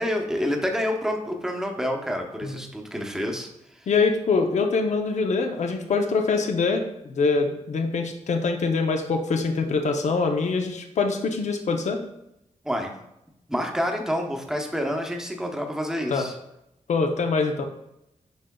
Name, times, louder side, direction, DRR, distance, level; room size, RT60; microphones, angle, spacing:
voice 1, 0.0-3.9 12.6-12.9 13.5-16.3, equal, 5° right, 2 dB, 0.9 m, -28 dB
voice 2, 3.9-12.0 16.1-16.3 16.9-17.6, left 4 dB, 65° left, 4 dB, 0.7 m, -24 dB
8.2 x 5.0 x 2.3 m, 0.84 s
cardioid pair, 95°, 13 cm